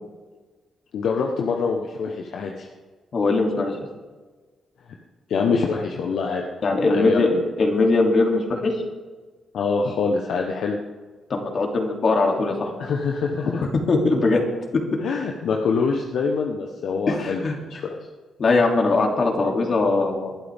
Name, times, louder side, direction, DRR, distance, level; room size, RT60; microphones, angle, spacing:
voice 1, 0.9-2.7 5.3-6.4 6.9-7.5 9.5-10.8 12.8-13.7 15.0-18.0, left 5 dB, 75° left, 1 dB, 1.2 m, -25 dB
voice 2, 3.1-3.8 6.6-8.7 11.3-12.7 13.7-14.5 14.7-14.8 17.1-17.6 18.4-20.3, left 3 dB, 50° left, 1 dB, 3.0 m, -20 dB
21.0 x 11.5 x 3.7 m, 1.3 s
cardioid pair, 80°, 0 cm